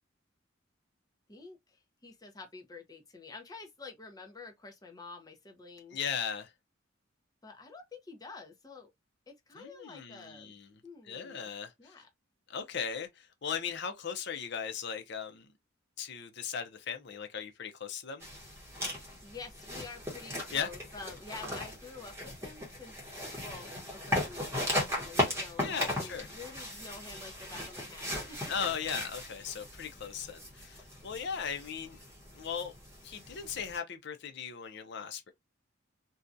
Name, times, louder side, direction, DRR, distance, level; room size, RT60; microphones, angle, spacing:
voice 1, 1.3-6.0 7.4-8.9 9.3-10.5 10.8-11.5 11.8-12.1 18.9-22.9 23.4-28.5 29.6-29.7, left 4 dB, 20° left, 0.6 m, -48 dB
voice 2, 5.9-6.5 9.6-12.0 12.5-15.5 16.0-18.3 20.5-20.7 25.6-26.3 28.5-32.0 32.3-32.7 33.0-35.3, left 7 dB, 60° left, 0.6 m, -38 dB
sound 1, 18.2-33.8, left 1 dB, 15° right, 0.9 m, -37 dB
2.7 x 2.2 x 2.5 m
head